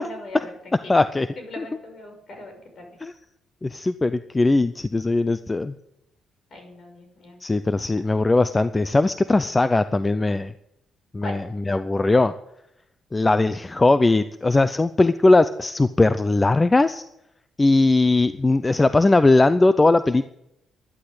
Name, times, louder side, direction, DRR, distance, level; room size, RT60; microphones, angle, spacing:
voice 1, 0.0-1.0 1.4-2.9 6.5-7.4 7.8-7.9 11.2-11.4, left 1 dB, 50° left, 4 dB, 5.8 m, -40 dB
voice 2, 0.9-1.3 1.6-1.7 3.0-3.1 3.6-5.7 7.4-10.5 11.1-11.4 11.7-12.3 13.1-17.0 17.6-20.3, left 2 dB, 20° left, 13 dB, 0.5 m, -19 dB
12.0 x 11.5 x 8.0 m, 0.83 s
cardioid pair, 90°, 0 cm